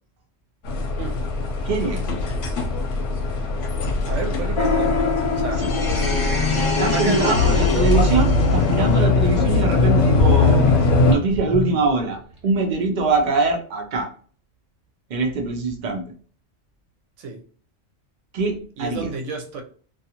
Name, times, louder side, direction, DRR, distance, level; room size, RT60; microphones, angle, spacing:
sound 1, 0.6-11.1, left 3 dB, 80° left, 0.9 m, -21 dB
voice 1, 1.6-2.1 5.6-5.7 6.5-14.1 15.1-16.1 18.3-19.1, right 3 dB, 60° right, 4 dB, 0.5 m, -23 dB
voice 2, 4.1-4.9 5.4-5.6 6.8-7.9 17.2-17.4 18.8-19.6, right 4 dB, 80° right, 3 dB, 0.9 m, -30 dB
sound 2, 4.5-9.0, left 3 dB, 55° left, 0.3 m, -25 dB
sound 3, 7.9-8.0 8.4-8.5 8.9-9.7 10.1-12.4 12.6-12.7, right 1 dB, 30° right, 0.8 m, -27 dB
2.4 x 2.3 x 2.8 m, 0.44 s
omnidirectional pair, 1.3 m